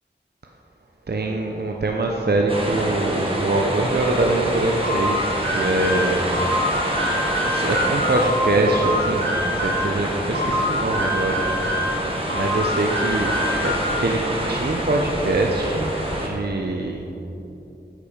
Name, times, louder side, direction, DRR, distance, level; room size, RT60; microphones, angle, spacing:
voice 1, 1.1-6.3 7.4-11.6 12.3-13.4 13.6-14.2 14.5-17.2, right 2 dB, 60° right, 1 dB, 0.8 m, -23 dB
sound 1, 2.5-16.3, right 1 dB, 30° right, 1.7 m, -26 dB
sound 2, 4.8-9.9 10.3-12.0 12.3-14.0, left 1 dB, 80° right, 2.4 m, -25 dB
8.6 x 8.5 x 5.1 m, 2.9 s
wide cardioid pair, 55°, 19 cm